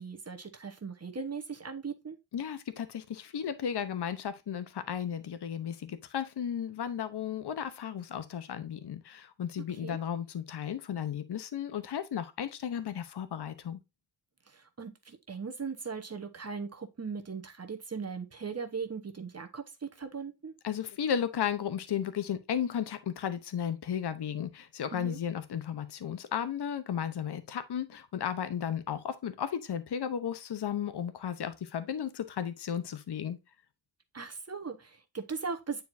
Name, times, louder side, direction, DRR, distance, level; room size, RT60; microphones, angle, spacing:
voice 1, 0.0-2.2 9.8-10.0 14.5-20.5 24.9-25.2 34.1-35.8, right 5 dB, 30° right, 1.1 m, -39 dB
voice 2, 2.3-13.8 20.6-33.4, left 8 dB, 55° left, 0.9 m, -34 dB
9.4 x 4.6 x 2.6 m
wide cardioid pair, 150°, 47 cm